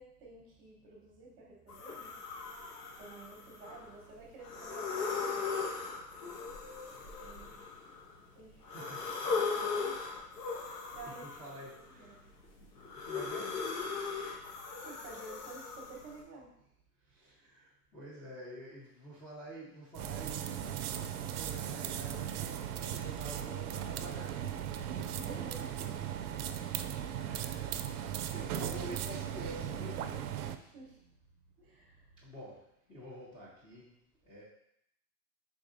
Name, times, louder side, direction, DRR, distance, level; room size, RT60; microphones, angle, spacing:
voice 1, 0.0-2.2 2.9-5.8 7.2-7.5 8.0-8.1 8.3-8.9 9.3-11.2 11.9-12.2 14.1-16.7 24.9-25.6 30.6-31.2 31.6-32.2, right 3 dB, 25° right, -2 dB, 1.1 m, -52 dB
sound 1, 1.7-3.9 4.4-8.1 8.6-11.8 12.3-16.1, left 5 dB, 85° left, 1.1 m, -38 dB
voice 2, 8.7-9.5 11.0-13.7 17.1-24.7 24.9-26.3 27.2-30.3 32.2-33.9 34.2-34.4, equal, 10° left, -10 dB, 0.7 m, -49 dB
sound 2, 19.9-30.6, right 10 dB, 70° right, 0.5 m, -37 dB
4.6 x 3.7 x 2.6 m, 0.77 s
hypercardioid pair, 135°, 47 cm